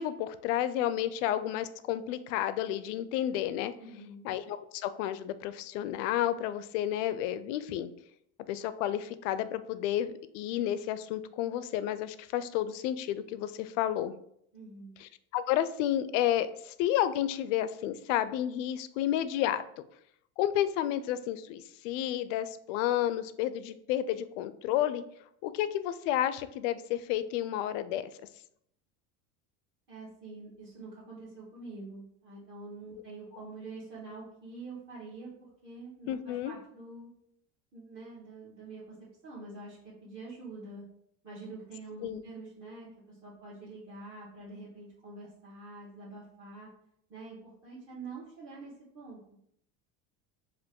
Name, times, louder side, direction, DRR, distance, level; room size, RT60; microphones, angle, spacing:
voice 1, 0.0-3.7 4.2-7.9 8.5-14.1 15.0-19.6 20.4-25.0 25.4-28.1 36.1-36.5 42.0-42.2, left 12 dB, 80° left, 13 dB, 0.5 m, -31 dB
voice 2, 3.8-4.2 14.5-14.9 29.9-37.1 37.7-38.8 39.2-40.8 41.2-46.7 47.1-49.4, right 3 dB, 35° right, -10 dB, 1.3 m, -46 dB
5.0 x 2.5 x 3.6 m, 0.72 s
cardioid pair, 165°, 36 cm